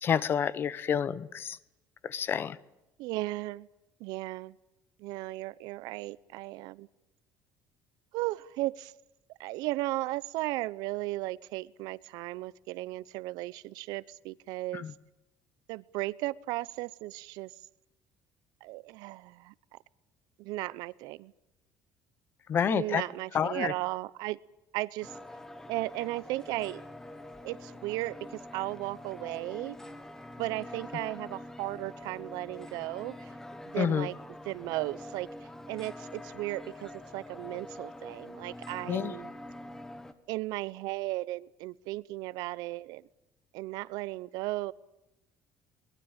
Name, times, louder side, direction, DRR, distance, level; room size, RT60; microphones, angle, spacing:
voice 1, 0.0-1.6 2.0-2.6 14.7-14.9 22.5-23.0 23.3-23.7 33.7-34.1 38.9-39.1, left 8 dB, 35° left, 18 dB, 0.9 m, -29 dB
voice 2, 3.0-3.7 4.0-4.6 5.0-6.9 8.1-8.9 9.4-14.8 15.7-17.5 18.6-19.5 20.4-21.3 22.7-24.4 24.7-25.2 25.7-26.8 27.4-29.8 30.4-33.3 33.7-34.1 34.5-35.3 35.7-39.3 40.3-43.0 43.5-44.7, right 19 dB, 80° right, 20 dB, 0.8 m, -35 dB
sound 1, 25.0-40.1, left 1 dB, 5° left, 1.6 m, -45 dB
22.5 x 21.5 x 8.9 m, 0.93 s
cardioid pair, 160°, 7 cm